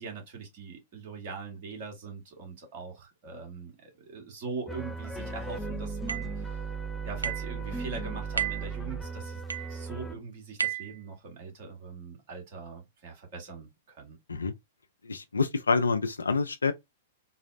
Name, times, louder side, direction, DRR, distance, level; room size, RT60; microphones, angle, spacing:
voice 1, 0.0-6.6 7.0-9.4 9.7-14.2, right 4 dB, 50° right, 1.4 m, -42 dB
sound 1, 4.7-10.1, right 4 dB, 5° left, 0.4 m, -36 dB
sound 2, 6.1-6.4 7.2-7.5 8.4-8.7 9.5-9.8 10.6-11.0, right 8 dB, 85° right, 0.3 m, -32 dB
voice 2, 15.1-16.7, left 4 dB, 85° left, 0.4 m, -27 dB
3.9 x 2.0 x 2.4 m
figure-of-eight pair, 105°, 0 cm